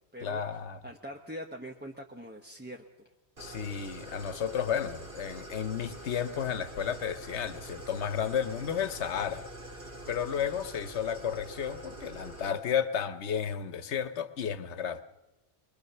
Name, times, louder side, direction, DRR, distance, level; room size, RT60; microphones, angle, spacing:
voice 1, 0.2-0.8 3.4-9.4 10.1-15.0, left 8 dB, 75° left, 13 dB, 1.3 m, -32 dB
voice 2, 0.8-2.8, equal, 10° right, 2 dB, 1.0 m, -42 dB
Idling, 3.4-12.5, right 1 dB, 55° right, 3.3 m, -45 dB
23.5 x 22.0 x 6.7 m, 1.0 s
omnidirectional pair, 1.2 m